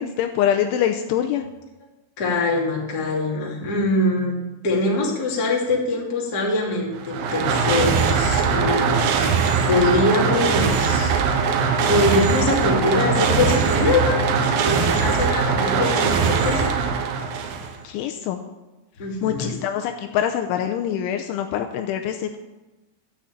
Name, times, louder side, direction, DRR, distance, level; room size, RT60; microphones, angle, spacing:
voice 1, 0.0-1.5 17.8-18.4 19.2-22.4, left 9 dB, 80° left, 5 dB, 2.9 m, -24 dB
voice 2, 2.2-4.3 4.6-11.5 11.9-14.2 14.6-16.7 19.0-19.6, left 2 dB, 30° left, -2 dB, 1.9 m, -23 dB
sound 1, 6.9-17.8, right 5 dB, 90° right, 2.0 m, -21 dB
12.5 x 6.8 x 8.9 m, 1.1 s
omnidirectional pair, 5.8 m